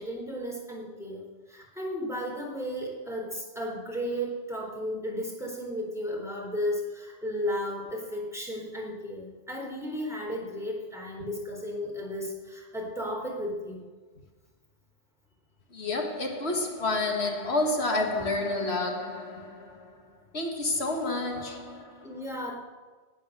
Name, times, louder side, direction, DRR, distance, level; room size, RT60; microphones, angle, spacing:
voice 1, 0.0-13.9 21.1-21.2 22.0-22.6, equal, 5° right, 4.0 m, -34 dB
voice 2, 15.7-20.0 20.3-22.1, left 2 dB, 85° left, 2.1 m, -29 dB
18.0 x 9.1 x 6.7 m
omnidirectional pair, 1.1 m